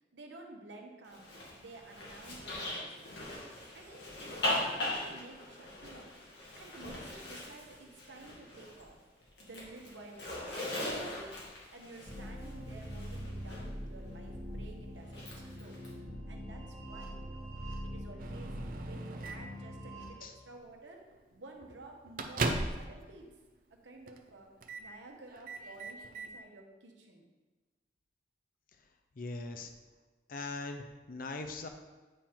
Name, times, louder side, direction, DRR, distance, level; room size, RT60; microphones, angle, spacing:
voice 1, 0.1-3.2 3.7-6.1 6.5-9.0 9.4-15.8 16.3-17.5 17.8-21.0 21.3-23.3 23.7-24.5 24.8-27.3, right 2 dB, 90° right, 1 dB, 1.1 m, -52 dB
Zipper (clothing), 1.1-8.9 9.2-13.6 15.0-15.9, left 1 dB, 70° left, 1.9 m, -40 dB
sound 1, 12.1-20.1, equal, 25° right, 1.7 m, -43 dB
Microwave oven, 18.2-19.6 20.5-20.7 21.1-21.2 21.6-23.0 23.3-23.4 24.1-24.3 24.6-24.9 25.3-26.3, right 2 dB, 50° right, 0.6 m, -38 dB
voice 2, 29.2-29.7 30.3-31.7, left 3 dB, 50° left, 6 dB, 0.6 m, -40 dB
8.9 x 3.8 x 4.4 m, 1.3 s
head